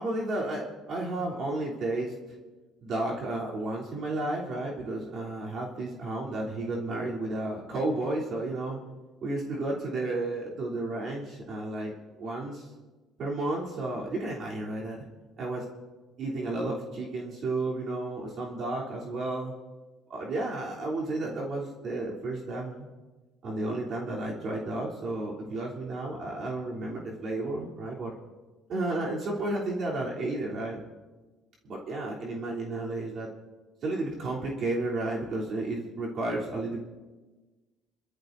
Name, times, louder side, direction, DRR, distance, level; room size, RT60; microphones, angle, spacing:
voice 1, 0.0-2.2 2.8-8.8 9.2-12.7 13.2-15.0 15.4-15.6 16.2-19.5 20.1-22.9 23.4-28.1 28.7-30.8 31.6-33.3 33.8-36.8, right 2 dB, 45° right, -4 dB, 3.3 m, -32 dB
28.5 x 13.5 x 2.7 m, 1.3 s
cardioid pair, 130°, 0 cm